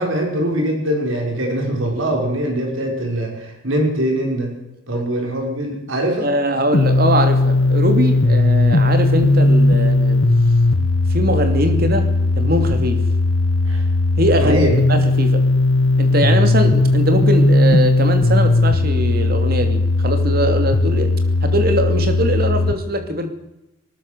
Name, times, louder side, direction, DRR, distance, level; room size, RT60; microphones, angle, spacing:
voice 1, 0.0-4.5 4.9-6.3 13.7-13.8 14.4-14.7, right 1 dB, 75° right, 2 dB, 5.4 m, -22 dB
voice 2, 6.2-10.2 11.1-13.0 14.2-14.6 14.9-15.4 16.0-23.3, equal, 45° right, 7 dB, 2.7 m, -21 dB
sound 1, 6.7-22.7, left 2 dB, 80° left, 1.4 m, -17 dB
19.5 x 19.5 x 6.8 m, 0.92 s
head